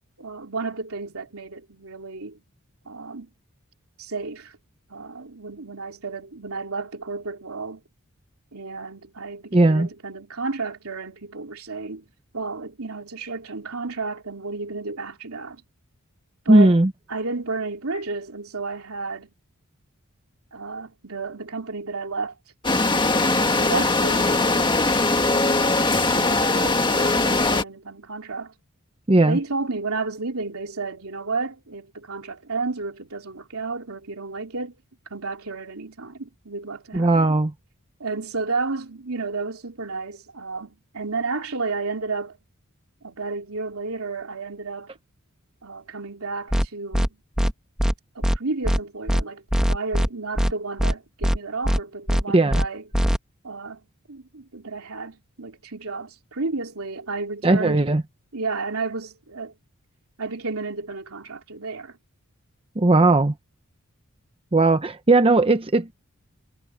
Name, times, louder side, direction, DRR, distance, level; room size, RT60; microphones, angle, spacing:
voice 1, 0.2-2.4 2.8-3.3 4.0-4.6 4.9-7.8 8.5-12.1 12.3-15.6 16.4-16.7 17.1-19.3 20.5-22.4 22.9-25.5 25.8-28.5 29.1-34.7 35.1-37.4 38.0-42.4 43.0-44.9 45.6-47.2 48.1-49.4 49.7-52.8 53.4-57.9 58.3-59.5 60.2-62.0, right 3 dB, 75° right, 3.2 m, -32 dB
voice 2, 9.5-9.9 16.5-16.9 29.1-29.4 36.9-37.5 52.3-52.6 57.4-58.0 62.8-63.3 64.5-65.9, right 2 dB, 25° right, 0.8 m, -17 dB
sound 1, 22.6-27.6, left 2 dB, 20° left, 1.7 m, -21 dB
sound 2, 46.5-46.6 46.9-47.1 47.4-47.5 47.8-47.9 48.2-48.4 48.6-48.8 49.1-49.2 49.5-50.1 50.4-50.5 50.8-50.9 51.2-51.4 51.6-51.8 52.1-52.2 52.5-52.6 52.9-53.2, equal, 5° right, 1.7 m, -20 dB
head